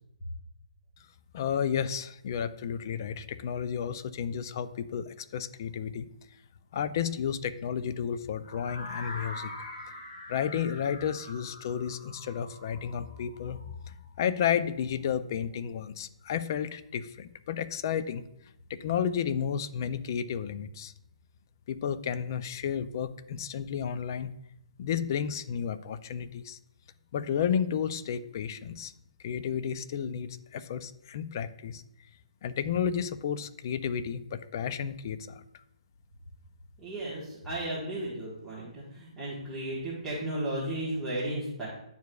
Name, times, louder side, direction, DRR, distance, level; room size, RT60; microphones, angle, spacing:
voice 1, 1.3-6.1 6.7-9.5 10.3-13.6 13.9-18.2 18.7-20.9 21.7-24.3 24.8-26.6 27.1-28.9 29.2-31.8 32.4-35.4, left 8 dB, 30° left, 13 dB, 0.3 m, -32 dB
sound 1, 8.4-14.4, left 2 dB, 80° left, 2.4 m, -44 dB
voice 2, 36.8-41.7, right 1 dB, ahead, -12 dB, 1.3 m, -34 dB
10.5 x 4.6 x 2.3 m, 0.80 s
hypercardioid pair, 170°, 4 cm